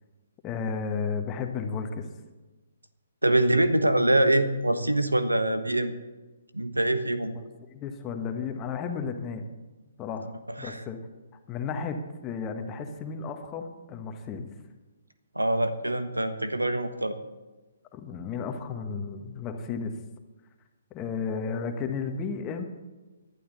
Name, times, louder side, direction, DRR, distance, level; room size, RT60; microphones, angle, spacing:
voice 1, 0.4-2.1 7.3-9.5 10.0-10.3 10.6-11.0 11.5-14.5 17.9-19.9 20.9-22.7, left 5 dB, 20° left, 5 dB, 1.5 m, -33 dB
voice 2, 3.2-5.9 6.5-7.3 10.6-10.8 15.3-17.2, right 1 dB, 85° right, 10 dB, 1.2 m, -24 dB
19.5 x 11.5 x 4.1 m, 1.2 s
figure-of-eight pair, 130°, 0 cm